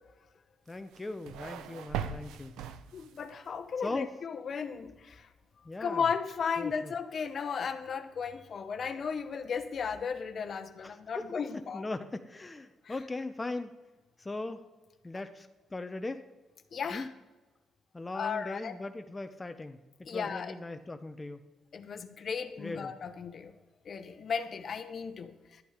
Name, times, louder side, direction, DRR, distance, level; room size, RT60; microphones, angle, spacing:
voice 1, 0.7-2.6 3.8-4.1 5.6-6.1 6.6-6.9 10.8-13.8 14.2-14.7 15.0-16.2 16.9-17.1 17.9-19.8 20.1-21.4 22.6-22.9, left 2 dB, 20° left, 0.7 m, -39 dB
sound 1, 0.7-3.4, right 8 dB, 90° right, 0.7 m, -40 dB
voice 2, 2.9-5.3 5.8-11.8 12.8-12.9 16.7-17.1 18.1-18.7 20.1-20.5 21.7-23.5 23.9-25.6, left 6 dB, 50° left, 0.9 m, -35 dB
12.0 x 8.4 x 4.9 m
cardioid pair, 90°, 0 cm